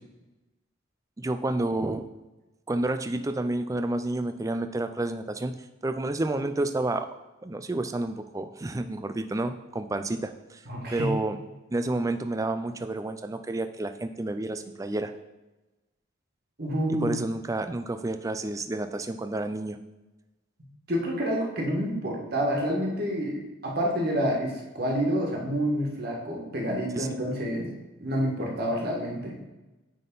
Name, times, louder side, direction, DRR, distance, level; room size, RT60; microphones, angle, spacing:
voice 1, 1.2-2.0 2.7-5.5 5.8-7.1 7.4-10.6 10.9-11.4 11.7-15.1 17.0-19.8 27.0-27.1, right 2 dB, 15° right, 9 dB, 0.3 m, -30 dB
voice 2, 10.7-11.1 16.6-17.1 20.9-27.7 28.0-29.3, equal, 50° right, -1 dB, 1.6 m, -28 dB
9.4 x 3.7 x 3.9 m, 1.1 s
head